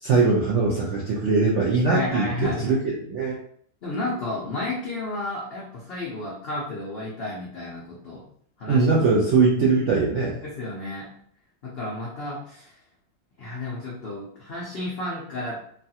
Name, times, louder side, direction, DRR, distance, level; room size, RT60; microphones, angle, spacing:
voice 1, 0.0-3.4 8.7-10.4, right 4 dB, 75° right, -4 dB, 0.6 m, -21 dB
voice 2, 1.9-2.8 3.8-8.2 8.6-8.9 10.4-11.1 11.6-12.8 13.4-15.6, left 2 dB, 85° left, -5 dB, 0.5 m, -32 dB
3.2 x 2.3 x 2.7 m, 0.63 s
omnidirectional pair, 1.9 m